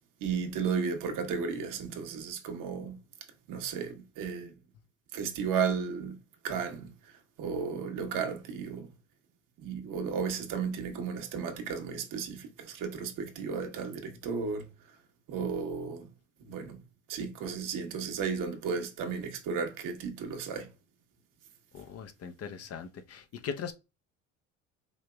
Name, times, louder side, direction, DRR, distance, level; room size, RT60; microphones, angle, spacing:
voice 1, 0.2-3.0 3.5-4.5 5.1-6.2 6.4-8.9 9.6-14.7 15.3-16.1 16.5-16.8 17.1-20.7, right 6 dB, 55° right, 1.2 m, -34 dB
voice 2, 21.7-23.7, left 6 dB, 40° left, 0.7 m, -40 dB
5.0 x 2.8 x 2.2 m
hypercardioid pair, 70°, 38 cm